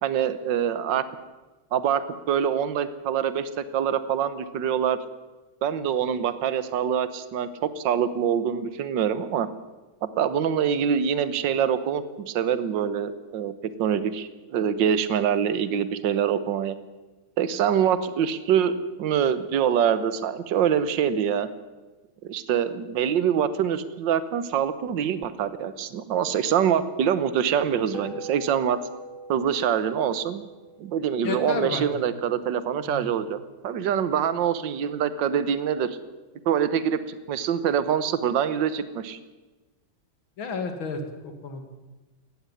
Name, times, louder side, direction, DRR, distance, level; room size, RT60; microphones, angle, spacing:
voice 1, 0.0-1.0 1.7-5.0 5.6-9.5 10.2-13.5 13.8-16.7 17.4-21.5 22.2-28.8 29.3-30.4 30.8-33.4 33.6-35.9 36.4-39.2, right 8 dB, 70° right, 13 dB, 1.7 m, -25 dB
sound 1, 27.9-32.6, right 2 dB, 40° right, 3.3 m, -43 dB
voice 2, 31.2-31.9 32.8-33.1 40.4-41.6, left 4 dB, 80° left, 6 dB, 2.9 m, -31 dB
18.5 x 14.5 x 9.9 m, 1.2 s
omnidirectional pair, 2.1 m